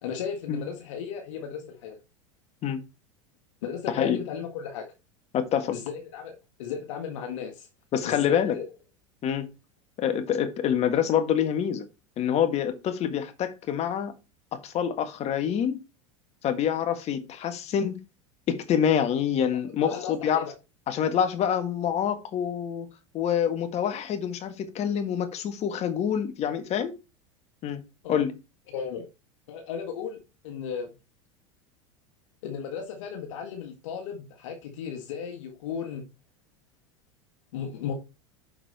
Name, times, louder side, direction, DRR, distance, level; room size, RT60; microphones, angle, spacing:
voice 1, 0.0-2.0 3.6-4.9 5.7-7.7 8.0-8.7 19.6-20.5 28.0-28.2 28.7-29.1 29.5-30.2 30.4-30.9 32.4-36.0 37.5-37.9, left 7 dB, 75° left, 1.9 m, -35 dB
voice 2, 5.3-5.7 7.9-8.6 9.2-9.5 10.0-11.9 12.2-14.1 14.5-15.8 16.4-18.0 18.5-20.5 20.9-22.9 23.1-27.0 27.6-27.8 28.1-28.3, left 8 dB, 40° left, 1.6 m, -26 dB
6.5 x 5.9 x 4.2 m
hypercardioid pair, 100°, 16 cm